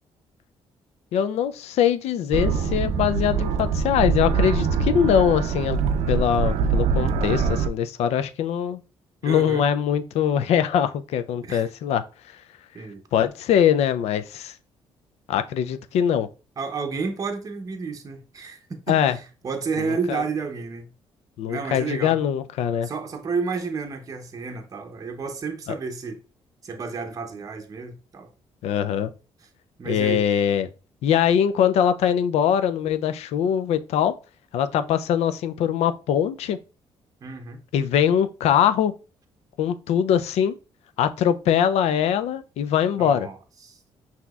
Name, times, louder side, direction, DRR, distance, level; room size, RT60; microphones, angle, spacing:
voice 1, 1.1-5.8 6.1-8.8 9.2-12.0 13.1-14.5 15.3-16.3 18.9-19.2 19.8-20.2 21.4-22.9 25.7-25.8 28.6-29.1 29.9-30.7 31.0-34.1 34.5-36.6 37.7-38.9 39.6-40.6 41.0-43.3, left 9 dB, 80° left, 0.4 m, -22 dB
sound 1, 2.3-7.7, right 5 dB, 85° right, 0.4 m, -23 dB
voice 2, 9.2-9.6 11.4-11.7 12.7-13.0 16.6-20.9 21.5-22.2 22.8-26.2 26.6-28.3 29.8-30.2 37.2-37.6 43.0-43.4 43.6-43.8, right 5 dB, 35° right, 0.6 m, -31 dB
5.9 x 2.8 x 2.3 m
cardioid pair, 105°, 11 cm